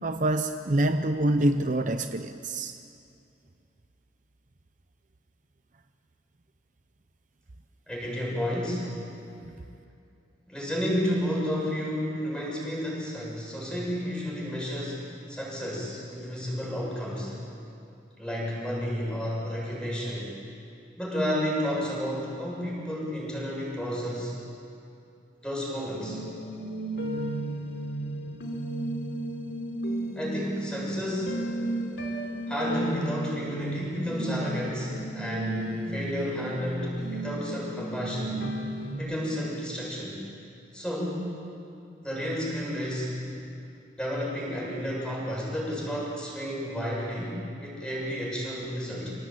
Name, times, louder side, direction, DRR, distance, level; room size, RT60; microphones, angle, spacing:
voice 1, 0.0-2.7 9.5-9.6, right 1 dB, 45° right, 8 dB, 0.7 m, -26 dB
voice 2, 7.9-9.0 10.5-17.4 18.2-20.3 21.0-24.3 25.4-26.2 30.2-31.4 32.5-38.4 38.9-40.2 40.7-41.3 42.0-43.2 44.0-49.1, equal, 5° left, -4 dB, 7.0 m, -31 dB
sound 1, 25.9-38.9, right 1 dB, 85° left, 3.6 m, -33 dB
27.0 x 17.0 x 8.7 m, 2.6 s
head